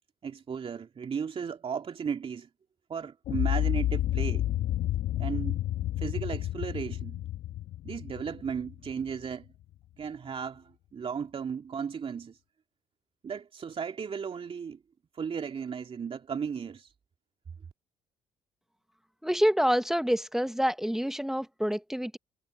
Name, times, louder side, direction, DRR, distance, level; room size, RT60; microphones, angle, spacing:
voice 1, 0.2-2.5 2.9-4.4 5.2-5.6 6.0-7.2 7.8-9.5 10.0-12.4 13.2-14.8 15.1-16.9, right 6 dB, 40° right, 2.3 m, -35 dB
sound 1, 3.2-9.3, left 13 dB, 65° left, 1.7 m, -30 dB
voice 2, 19.2-22.2, equal, 5° right, 1.5 m, -27 dB
hypercardioid pair, 55°, 14 cm